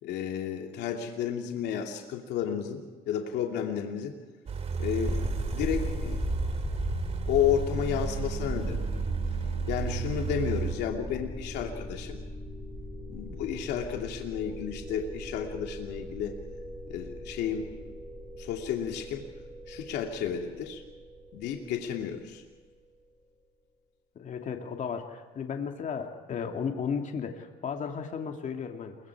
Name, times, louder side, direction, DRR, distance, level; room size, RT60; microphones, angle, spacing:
voice 1, 0.0-4.1 4.8-6.2 7.3-9.0 9.7-12.2 13.1-16.3 16.9-17.9 18.4-19.2 19.7-20.8 21.3-22.4, left 8 dB, 80° left, 2 dB, 2.8 m, -32 dB
sound 1, 4.5-10.8, right 6 dB, 40° right, 2.5 m, -34 dB
sound 2, 5.1-22.0, right 1 dB, 5° right, 4.8 m, -37 dB
voice 2, 24.2-29.0, left 6 dB, 45° left, 4 dB, 2.6 m, -34 dB
29.0 x 23.0 x 4.8 m, 1.4 s
cardioid pair, 110°, 17 cm